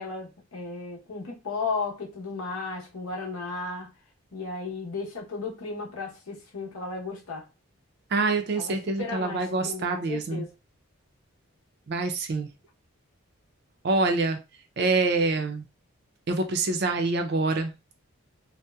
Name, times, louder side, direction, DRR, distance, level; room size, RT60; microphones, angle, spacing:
voice 1, 0.0-3.9 4.3-7.5 8.5-10.5, left 4 dB, 85° left, 0.8 m, -35 dB
voice 2, 8.1-10.4 11.9-12.5 13.8-14.4 14.8-15.7 16.3-17.7, right 3 dB, 50° right, 0.4 m, -26 dB
2.7 x 2.0 x 2.2 m
head